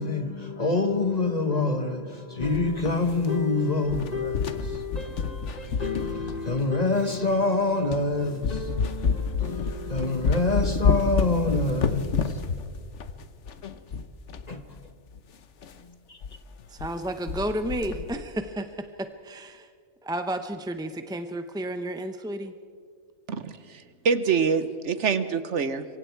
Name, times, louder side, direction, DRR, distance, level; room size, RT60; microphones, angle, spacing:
voice 1, 0.0-12.5 14.5-14.6 15.8-16.2, left 3 dB, 30° left, 1.1 m, -27 dB
sound 1, 2.4-3.5 3.8-6.8 7.4-7.5 7.9-8.1 8.4-14.5 14.8-14.9 15.1-15.2 15.6-15.8 16.2-16.4 16.6-17.0 17.3-18.2, left 5 dB, 55° left, 1.2 m, -29 dB
voice 2, 16.7-19.7 20.0-22.5, right 1 dB, 5° right, 0.4 m, -32 dB
voice 3, 23.3-25.9, right 6 dB, 60° right, 1.2 m, -26 dB
27.0 x 23.0 x 4.6 m
omnidirectional pair, 1.5 m